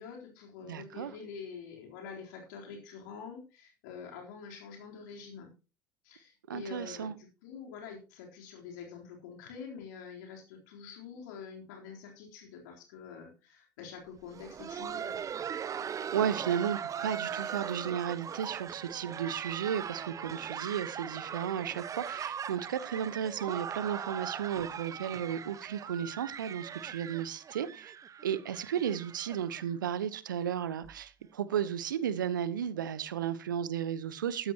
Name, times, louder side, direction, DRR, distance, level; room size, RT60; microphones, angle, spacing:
voice 1, 0.0-5.5 6.0-15.2, left 6 dB, 65° left, 3.8 m, -46 dB
voice 2, 0.7-1.1 6.5-7.1 16.1-27.9 28.2-34.5, right 9 dB, 80° right, 1.0 m, -34 dB
Laughter, 14.2-29.9 30.1-30.2 30.8-31.0 31.5-31.7 32.8-32.9, right 8 dB, 30° right, 0.7 m, -40 dB
14.0 x 12.5 x 3.0 m
figure-of-eight pair, 65°, 10 cm